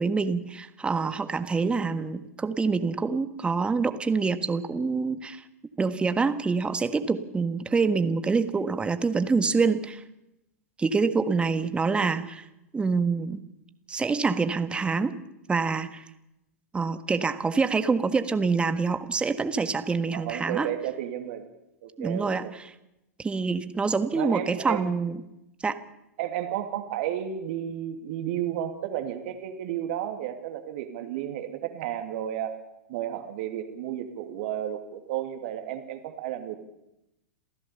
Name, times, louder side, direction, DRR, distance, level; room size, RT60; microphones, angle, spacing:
voice 1, 0.0-5.4 5.8-10.0 10.8-12.4 12.7-13.4 13.9-15.1 15.5-16.0 16.7-20.7 22.0-22.7 23.2-25.2 25.6-25.8, right 4 dB, 15° right, 10 dB, 1.5 m, -26 dB
voice 2, 20.1-21.5 21.8-22.5 24.1-24.9 26.2-32.6 32.9-36.6, right 11 dB, 55° right, 6 dB, 2.5 m, -32 dB
27.5 x 15.5 x 6.9 m, 0.89 s
figure-of-eight pair, 95°, 8 cm